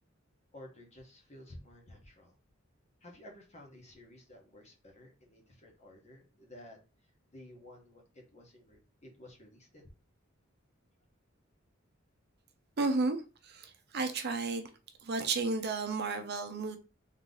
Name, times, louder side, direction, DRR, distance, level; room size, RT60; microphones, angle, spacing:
voice 1, 0.5-2.4 3.0-6.8 7.3-9.9, left 1 dB, 35° left, 1.2 m, -53 dB
voice 2, 12.8-14.7 15.0-16.8, right 3 dB, 55° right, 0.6 m, -33 dB
3.7 x 3.1 x 3.8 m
head